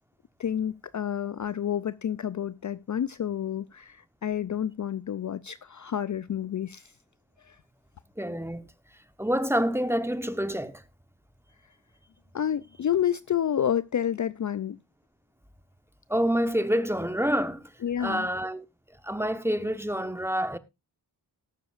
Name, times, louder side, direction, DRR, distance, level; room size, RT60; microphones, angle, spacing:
voice 1, 0.4-6.9 7.4-7.6 12.3-14.8 17.8-18.3, left 9 dB, 45° left, 0.5 m, -29 dB
voice 2, 8.2-8.6 9.2-10.8 16.1-17.6 18.0-18.6 19.0-20.6, equal, 5° right, 1.0 m, -27 dB
20.0 x 6.9 x 2.5 m
cardioid pair, 50°, 43 cm